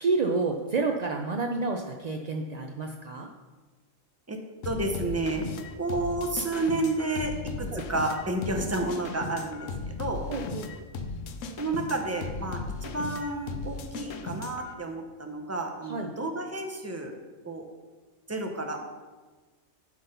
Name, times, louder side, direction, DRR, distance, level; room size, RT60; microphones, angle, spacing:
voice 1, 0.0-3.3 7.7-7.8 10.3-10.8 15.8-16.1, right 3 dB, 65° right, 3 dB, 0.4 m, -29 dB
sound 1, 4.6-14.7, left 4 dB, 70° left, 1.0 m, -37 dB
voice 2, 4.6-5.4 5.8-10.2 11.6-17.2 17.4-17.6 18.3-18.8, right 2 dB, 15° right, 3 dB, 0.7 m, -31 dB
11.5 x 3.9 x 5.4 m, 1.3 s
omnidirectional pair, 1.4 m